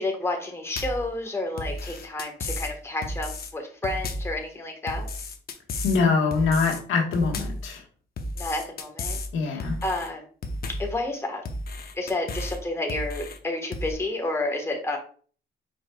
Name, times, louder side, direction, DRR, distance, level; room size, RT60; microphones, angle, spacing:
voice 1, 0.0-5.1 8.4-10.2 10.8-11.4 11.9-15.0, left 2 dB, 15° left, 1 dB, 1.2 m, -30 dB
sound 1, 0.8-1.1 1.6-2.7 3.0-3.5 3.8-4.3 4.9-6.0 6.3-6.8 7.1-7.6 8.2-9.3 9.6-10.1 10.4-10.9 11.4-12.6 12.9-13.4 13.7-13.9, left 1 dB, 50° left, 0.8 m, -33 dB
voice 2, 5.8-7.8 9.3-9.8, left 4 dB, 80° left, 0 dB, 1.4 m, -23 dB
5.0 x 4.6 x 2.2 m, 0.42 s
cardioid pair, 90°, 20 cm